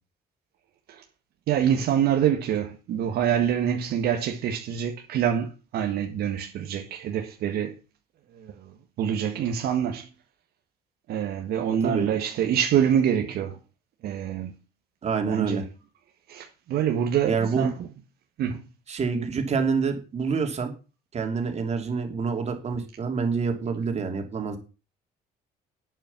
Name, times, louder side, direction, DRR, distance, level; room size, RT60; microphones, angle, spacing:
voice 1, 1.5-7.8 8.3-10.1 11.1-13.6 14.0-14.5 15.3-15.6 16.3-17.7 18.4-18.6, right 9 dB, 70° right, 1.7 m, -26 dB
voice 2, 11.8-12.1 15.0-15.6 17.2-17.7 18.9-20.7 21.1-24.6, right 5 dB, 40° right, 3.0 m, -27 dB
8.9 x 7.6 x 7.1 m
cardioid pair, 110°, 17 cm